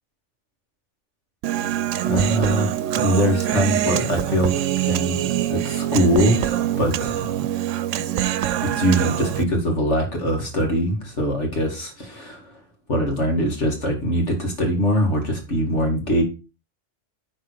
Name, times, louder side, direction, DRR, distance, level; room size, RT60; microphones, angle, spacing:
Human voice, 1.4-9.4, right 12 dB, 85° right, 0.9 m, -24 dB
voice 1, 2.1-7.3 8.6-12.5 12.9-16.2, equal, 70° left, 2 dB, 2.4 m, -22 dB
10.5 x 4.2 x 4.9 m, 0.32 s
omnidirectional pair, 1.3 m